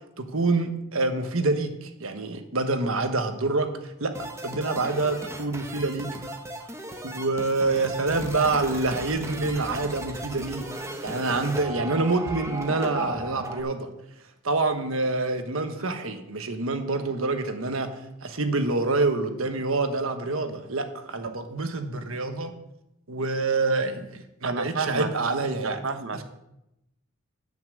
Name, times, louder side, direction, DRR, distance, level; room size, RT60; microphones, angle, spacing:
voice 1, 0.2-3.7 4.0-6.3 7.0-10.6 11.0-13.9 14.4-17.9 18.2-22.5 23.1-25.8, right 3 dB, 80° right, 7 dB, 1.3 m, -26 dB
sound 1, 4.1-13.6, right 1 dB, 15° right, 1.0 m, -36 dB
voice 2, 24.4-25.1 25.6-26.2, right 4 dB, 65° right, 9 dB, 0.9 m, -30 dB
11.0 x 5.8 x 7.7 m, 0.88 s
head